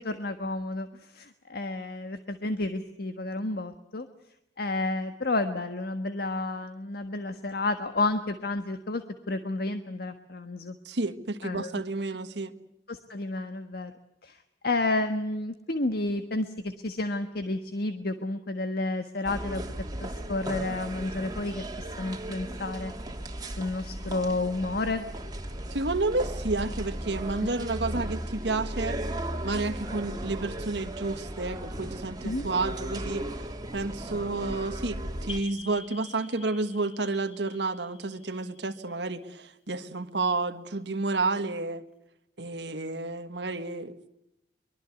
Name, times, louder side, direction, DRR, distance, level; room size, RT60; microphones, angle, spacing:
voice 1, 0.0-4.1 4.6-10.8 11.4-11.7 12.9-13.9 14.2-22.9 23.4-25.1 27.4-27.5 32.2-32.5, left 2 dB, 60° left, 8 dB, 1.5 m, -31 dB
voice 2, 10.8-12.5 25.7-29.0 29.4-33.2 33.7-41.8 42.4-44.0, right 3 dB, 75° right, 7 dB, 1.4 m, -30 dB
sound 1, 19.2-35.4, right 1 dB, 25° right, 2.6 m, -36 dB
sound 2, 35.3-39.7, left 5 dB, 35° left, 1.3 m, -47 dB
24.0 x 23.0 x 8.2 m, 0.85 s
head